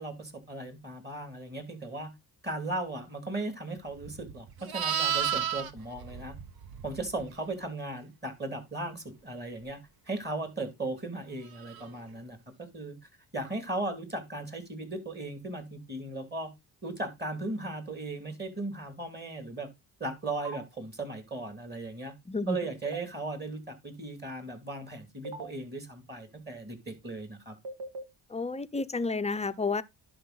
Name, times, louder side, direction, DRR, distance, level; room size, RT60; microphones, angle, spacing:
voice 1, 0.0-2.1 2.4-6.4 6.8-9.8 10.1-12.4 12.7-13.0 13.3-16.5 16.8-19.7 20.0-22.1 22.5-27.5, right 2 dB, 25° right, 2.5 m, -37 dB
Livestock farm animals working animals, 4.0-7.3 11.6-11.9, right 8 dB, 60° right, 1.0 m, -32 dB
sound 1, 20.4-20.6 22.8-23.0 25.2-25.5 27.6-28.0, right 2 dB, 85° right, 1.8 m, -38 dB
voice 2, 22.3-22.6 28.3-29.8, left 3 dB, 15° left, 0.5 m, -30 dB
11.0 x 4.4 x 3.9 m
cardioid pair, 85°, 41 cm